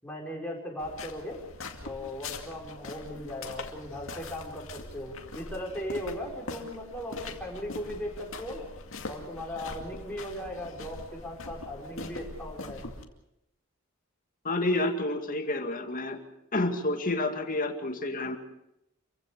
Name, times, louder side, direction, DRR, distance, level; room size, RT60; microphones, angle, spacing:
voice 1, 0.0-1.4 1.8-8.7 9.1-12.9, left 1 dB, 10° left, -2 dB, 5.2 m, -38 dB
sound 1, 0.8-13.0, left 3 dB, 65° left, 2.3 m, -42 dB
voice 2, 14.4-16.2 16.5-18.4, left 2 dB, 40° left, 6 dB, 2.2 m, -29 dB
28.0 x 16.0 x 6.8 m, 0.85 s
head